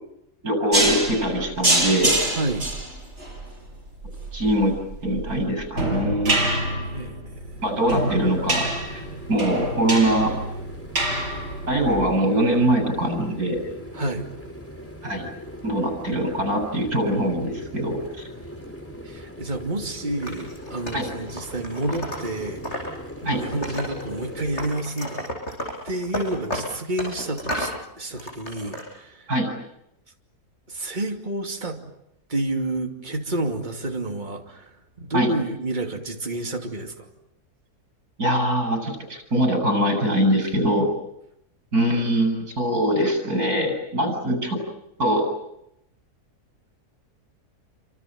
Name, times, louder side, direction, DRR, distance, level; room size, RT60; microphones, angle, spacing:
voice 1, 0.4-2.1 4.3-4.7 5.0-6.4 7.6-8.6 8.9-10.3 11.7-13.6 15.0-15.3 15.6-18.3 20.9-21.1 23.2-23.4 29.3-29.5 35.1-35.3 38.2-40.9 41.7-44.6 45.0-45.3, right 1 dB, 65° right, 6 dB, 8.0 m, -22 dB
sound 1, 0.7-12.0, right 1 dB, 45° right, 6.5 m, -26 dB
voice 2, 2.4-2.7 6.9-7.2 13.9-14.3 19.0-22.6 23.2-25.4 25.8-27.7 28.0-29.3 30.7-31.8 32.3-34.7 35.0-37.1, right 1 dB, 30° right, 3 dB, 2.8 m, -29 dB
sound 2, 7.3-24.7, equal, 10° left, 4.2 m, -40 dB
Wood, 20.2-22.9 23.2-24.2 24.6-27.8 28.2-28.8, equal, 45° left, 7.3 m, -33 dB
28.5 x 26.5 x 7.7 m, 0.81 s
omnidirectional pair, 1.7 m